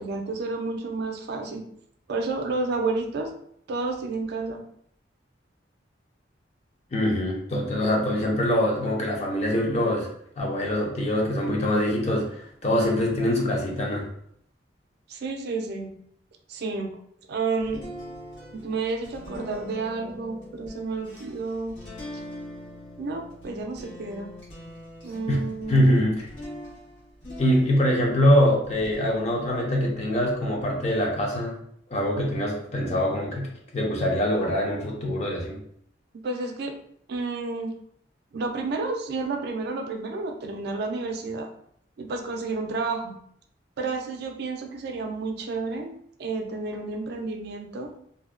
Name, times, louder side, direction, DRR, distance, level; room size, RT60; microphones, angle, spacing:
voice 1, 0.0-1.6 2.1-3.3 3.7-4.6 15.1-15.9 16.5-16.9 17.3-17.8 18.5-21.8 23.0-24.3 25.0-26.0 36.1-36.8 37.1-37.7 38.3-41.5 42.0-43.2 43.8-45.9 46.2-47.9, right 3 dB, 60° right, 3 dB, 0.4 m, -30 dB
voice 2, 6.9-10.1 10.4-14.1 25.3-25.4 25.7-26.3 27.4-31.6 31.9-33.5 33.7-35.6, equal, 35° left, -1 dB, 0.6 m, -24 dB
sound 1, 17.6-28.2 28.6-31.0, left 1 dB, 85° left, 1.1 m, -43 dB
2.5 x 2.1 x 2.3 m, 0.68 s
head